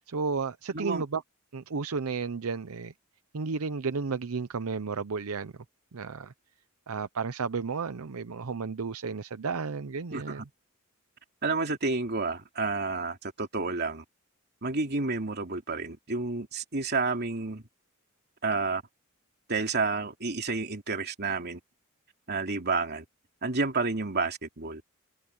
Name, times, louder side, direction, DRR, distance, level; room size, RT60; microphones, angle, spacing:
voice 1, 0.1-1.2 1.5-2.9 3.3-5.5 5.9-6.3 6.9-10.4, right 4 dB, 80° right, 0.7 m, -32 dB
voice 2, 0.7-1.0 10.1-10.4 11.4-14.0 14.6-17.6 18.4-18.8 19.5-21.6 22.3-23.0 23.4-24.8, right 3 dB, 50° right, 3.0 m, -30 dB
head